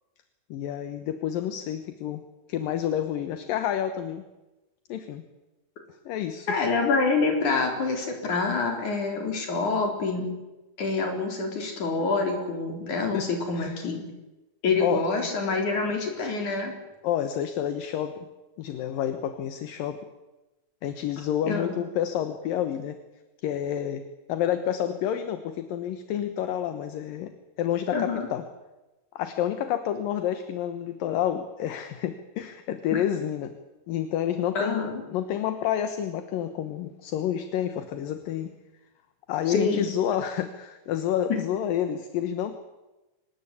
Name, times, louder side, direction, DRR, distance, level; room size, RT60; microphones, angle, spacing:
voice 1, 0.5-2.2 2.5-4.2 4.9-5.2 6.1-6.5 13.1-13.3 13.6-13.8 14.8-15.0 17.0-18.3 18.6-20.1 20.8-23.0 23.4-24.0 24.3-28.4 29.2-33.6 33.9-38.5 39.3-42.6, left 10 dB, 70° left, 9 dB, 2.8 m, -29 dB
voice 2, 6.5-10.3 10.8-14.1 14.6-16.7 21.5-21.7 27.9-28.3 34.6-35.0 39.5-39.9, left 4 dB, 55° left, 3 dB, 5.4 m, -26 dB
25.0 x 19.5 x 8.4 m, 1.1 s
omnidirectional pair, 4.3 m